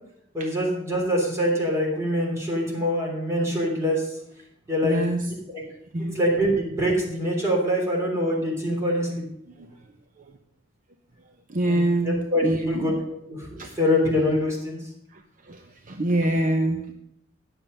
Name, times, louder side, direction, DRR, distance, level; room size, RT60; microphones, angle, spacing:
voice 1, 0.3-4.1 4.7-5.0 5.3-5.6 6.0-9.2 11.6-14.8, equal, 15° right, -3 dB, 3.6 m, -25 dB
voice 2, 4.8-5.3 5.9-6.2 11.5-12.9 13.6-13.7 15.9-16.9, right 1 dB, 40° right, 5 dB, 0.7 m, -24 dB
10.0 x 7.2 x 6.7 m, 0.76 s
head